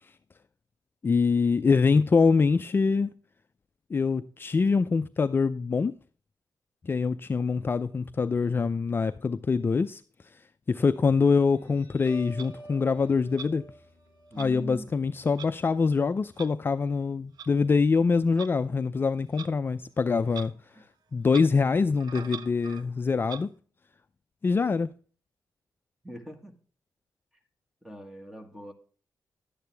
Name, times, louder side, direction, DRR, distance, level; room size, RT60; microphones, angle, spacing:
voice 1, 1.0-3.1 3.9-5.9 6.8-10.0 10.7-13.6 14.4-20.5 21.1-23.5 24.4-24.9, left 4 dB, 30° left, 0.4 m, -24 dB
Guitar, 11.3-18.3, right 1 dB, 40° right, 4.8 m, -51 dB
Clock, 12.4-12.5 13.3-13.5 14.4-14.5 15.4-15.5 16.4-16.5 17.4-17.5 18.4-18.5 19.3-19.5 20.3-20.5 20.8-20.9 21.3-21.5 22.0-22.9 23.2-23.4, right 7 dB, 75° right, 0.7 m, -41 dB
voice 2, 14.3-14.9 26.0-26.5 27.8-28.7, right 1 dB, 5° right, 1.7 m, -42 dB
11.5 x 8.6 x 3.4 m
wide cardioid pair, 120°, 7 cm